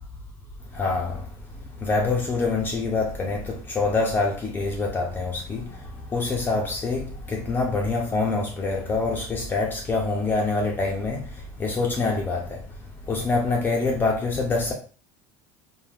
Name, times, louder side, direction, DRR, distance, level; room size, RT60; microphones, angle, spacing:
voice 1, 0.7-1.2 1.8-5.6 6.1-11.2 11.6-12.6 13.1-14.7, left 3 dB, 20° left, 0.5 m, -25 dB
2.6 x 2.4 x 3.3 m
cardioid pair, 130°, 9 cm